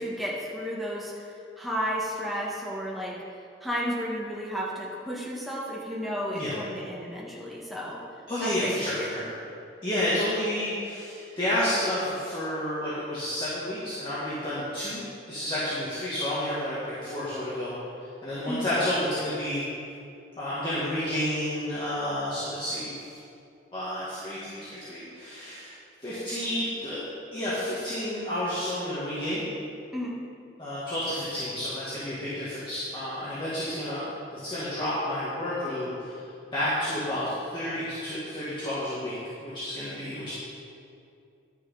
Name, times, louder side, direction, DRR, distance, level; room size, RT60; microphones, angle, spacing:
voice 1, 0.0-3.2 3.6-8.0 8.4-9.2 18.5-18.7 29.9-30.2, equal, ahead, -6 dB, 1.7 m, -33 dB
voice 2, 8.3-9.3 9.8-15.0 15.3-17.7 18.2-19.6 20.4-23.0 23.7-25.7 26.0-27.0 27.3-29.4 30.6-34.0 34.3-36.2 36.5-39.1 39.4-40.3, left 1 dB, 25° left, -11 dB, 2.1 m, -30 dB
11.0 x 6.8 x 5.7 m, 2.5 s
head